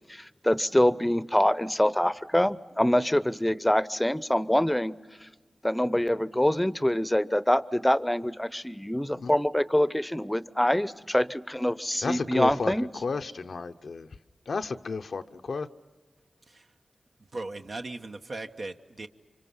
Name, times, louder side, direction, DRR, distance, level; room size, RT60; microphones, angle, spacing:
voice 1, 0.1-5.0 5.6-12.9, left 1 dB, 10° left, 0.7 m, -25 dB
voice 2, 12.0-12.7 13.0-14.1 14.5-15.7, left 4 dB, 75° left, 0.7 m, -32 dB
voice 3, 17.3-19.1, right 2 dB, 65° right, 1.1 m, -38 dB
28.5 x 25.0 x 5.6 m
cardioid pair, 45°, 0 cm